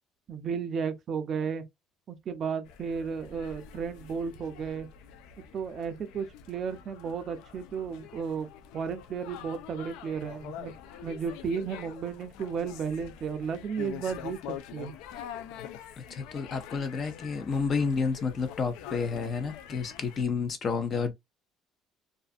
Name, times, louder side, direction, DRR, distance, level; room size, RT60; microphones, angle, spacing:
voice 1, 0.3-1.6 2.1-4.9 5.5-8.5 8.7-10.7 11.0-14.4 14.7-14.9, right 6 dB, 35° right, 0.4 m, -33 dB
sound 1, 2.7-20.2, left 9 dB, 90° left, 0.4 m, -45 dB
voice 2, 16.0-21.1, left 5 dB, 30° left, 0.5 m, -30 dB
2.4 x 2.4 x 2.4 m
cardioid pair, 165°, 0 cm